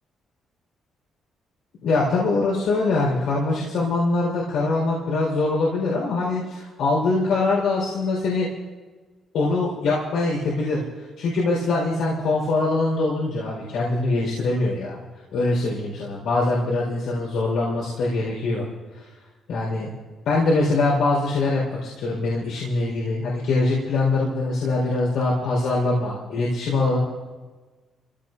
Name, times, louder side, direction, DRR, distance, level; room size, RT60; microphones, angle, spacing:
voice 1, 1.8-8.5 9.3-10.8 11.2-15.0 15.3-18.6 18.9-19.0 19.5-19.9 20.2-27.0, left 3 dB, 80° left, -4 dB, 4.8 m, -23 dB
27.0 x 17.0 x 2.7 m, 1.3 s
cardioid pair, 90°, 0 cm